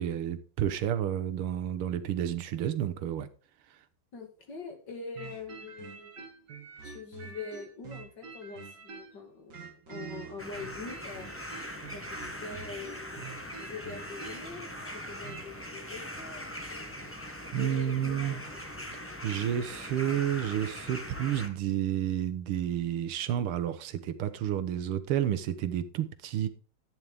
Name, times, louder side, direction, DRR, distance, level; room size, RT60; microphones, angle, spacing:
voice 1, 0.0-3.3 17.5-18.4 19.2-26.5, right 10 dB, 85° right, 1.9 m, -30 dB
voice 2, 4.1-6.3 6.8-11.3 11.9-13.2 13.6-14.7 15.1-17.0 17.5-18.6, left 4 dB, 55° left, 2.7 m, -44 dB
sound 1, 5.2-9.2 9.5-15.5, right 6 dB, 55° right, 2.2 m, -46 dB
sound 2, 10.4-21.5, left 1 dB, 10° left, 1.1 m, -41 dB
12.0 x 9.5 x 3.5 m
omnidirectional pair, 2.3 m